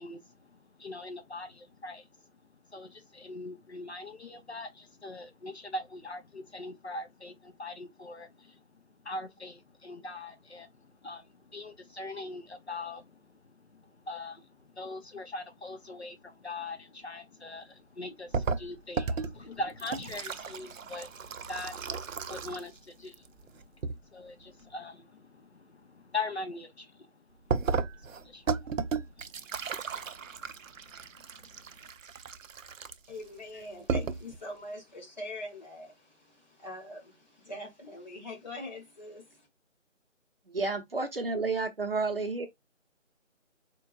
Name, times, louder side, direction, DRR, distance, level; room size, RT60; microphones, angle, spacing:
voice 1, 0.0-2.1 2.7-8.6 9.0-13.3 13.7-27.1 27.9-28.8 29.2-30.3 31.4-31.5, left 2 dB, 55° left, 0.7 m, -42 dB
sound 1, 18.3-22.8 23.0-24.0 27.5-33.2 33.6-33.7 33.9-34.4, right 5 dB, 85° right, 0.5 m, -34 dB
voice 2, 33.1-39.5, left 1 dB, 35° left, 1.5 m, -43 dB
voice 3, 40.5-42.5, right 3 dB, 45° right, 0.7 m, -31 dB
4.4 x 2.3 x 2.3 m
figure-of-eight pair, 170°, 38 cm